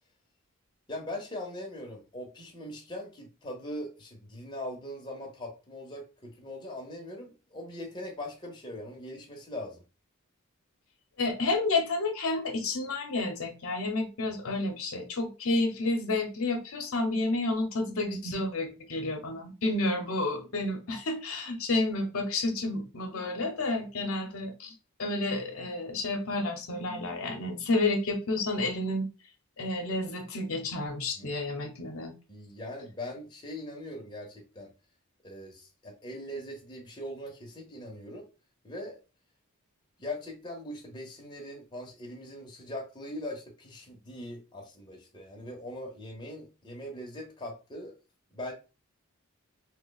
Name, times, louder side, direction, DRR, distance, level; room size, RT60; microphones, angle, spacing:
voice 1, 0.9-9.8 31.2-31.3 32.3-34.7 35.2-38.2 38.6-39.0 40.0-47.9 48.3-48.5, left 1 dB, 20° left, 0.8 m, -41 dB
voice 2, 11.2-24.7 25.0-29.1 29.6-32.1, left 2 dB, 70° left, 0.8 m, -30 dB
2.9 x 2.2 x 3.9 m
head